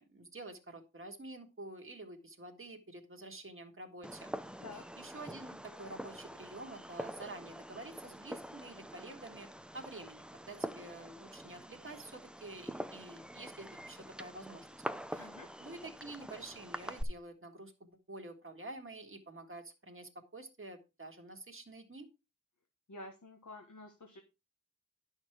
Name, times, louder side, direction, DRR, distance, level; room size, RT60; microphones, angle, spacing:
voice 1, 0.0-4.3 4.7-14.8 15.1-15.3 15.6-22.1, right 2 dB, 40° right, 3 dB, 1.8 m, -49 dB
Fireworks, 4.0-17.0, equal, 5° right, 0.7 m, -45 dB
voice 2, 15.2-15.5 22.9-24.2, left 2 dB, 60° left, 4 dB, 1.5 m, -49 dB
10.5 x 6.4 x 4.6 m, 0.27 s
wide cardioid pair, 60°, 33 cm